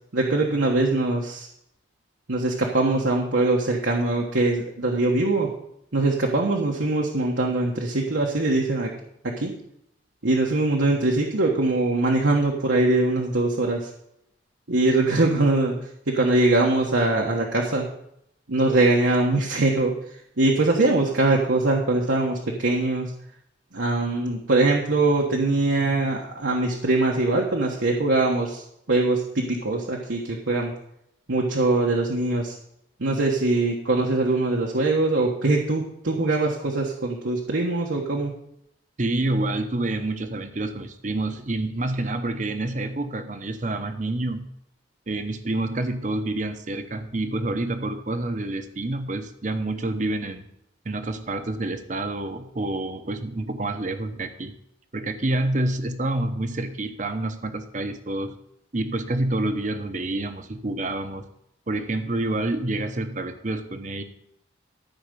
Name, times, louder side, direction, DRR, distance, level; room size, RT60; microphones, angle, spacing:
voice 1, 0.1-1.5 2.3-5.5 5.9-8.9 9.4-9.5 10.2-13.9 14.7-15.8 16.1-17.8 18.5-19.9 20.4-23.1 23.7-28.6 28.9-30.7 31.3-32.5 33.0-38.3, right 2 dB, 80° right, -1 dB, 1.3 m, -22 dB
voice 2, 39.0-44.5 45.1-50.5 50.8-54.5 54.9-58.3 58.7-61.3 61.7-64.0, right 2 dB, 40° right, 8 dB, 0.9 m, -28 dB
13.0 x 5.1 x 6.7 m, 0.76 s
head